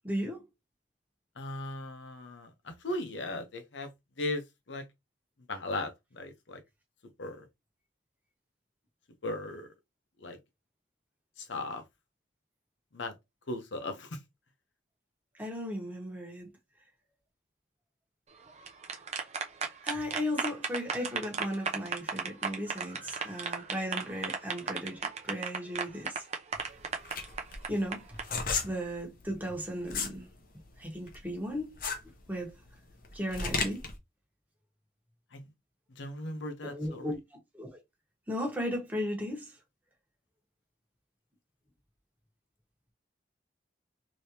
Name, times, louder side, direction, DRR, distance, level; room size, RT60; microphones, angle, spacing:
voice 1, 0.0-0.4 15.3-16.5 19.8-26.3 27.7-28.0 28.6-30.3 30.8-31.7 32.3-32.5 33.1-33.9 36.6-37.2 37.5-37.8 38.3-39.5, equal, 10° right, 1.3 m, -35 dB
voice 2, 1.4-3.9 4.2-4.4 4.7-4.8 5.5-6.6 7.2-7.4 9.2-9.7 10.2-10.4 11.4-11.8 12.9-13.1 13.5-14.2 35.3-35.5 36.0-37.1, left 2 dB, 80° left, 0.8 m, -37 dB
sound 1, 18.5-28.2, right 5 dB, 35° right, 0.6 m, -35 dB
sound 2, 26.6-30.2 30.6-34.0, left 4 dB, 50° left, 0.8 m, -34 dB
3.4 x 2.9 x 2.8 m
head